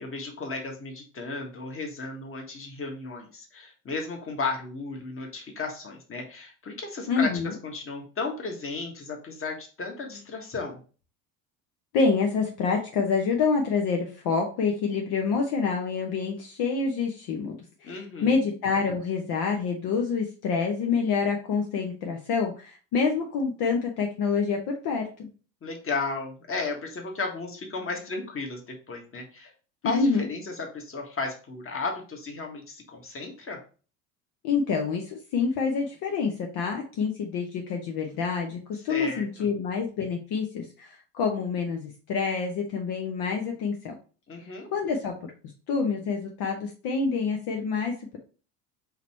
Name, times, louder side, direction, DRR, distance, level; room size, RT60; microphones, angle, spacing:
voice 1, 0.0-10.8 17.8-18.4 25.6-29.5 29.8-33.6 38.9-39.5 44.3-44.7, left 3 dB, 30° left, 2 dB, 1.5 m, -34 dB
voice 2, 7.1-7.5 11.9-25.3 29.8-30.3 34.4-43.9 44.7-45.1 45.7-48.2, left 5 dB, 55° left, 2 dB, 1.0 m, -27 dB
3.9 x 3.1 x 4.3 m, 0.37 s
hypercardioid pair, 70°, 46 cm